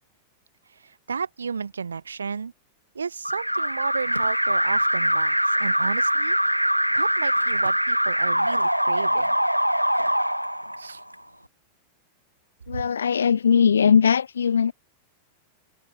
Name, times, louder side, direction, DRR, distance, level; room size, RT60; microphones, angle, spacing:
voice 1, 1.1-2.5 3.0-6.4 6.9-9.4 10.8-11.0, right 5 dB, 75° right, 2.0 m, -32 dB
Alarm, 3.2-11.1, equal, 90° right, 1.6 m, -23 dB
voice 2, 12.7-14.7, left 7 dB, 70° left, 2.1 m, -20 dB
figure-of-eight pair, 90°, 0 cm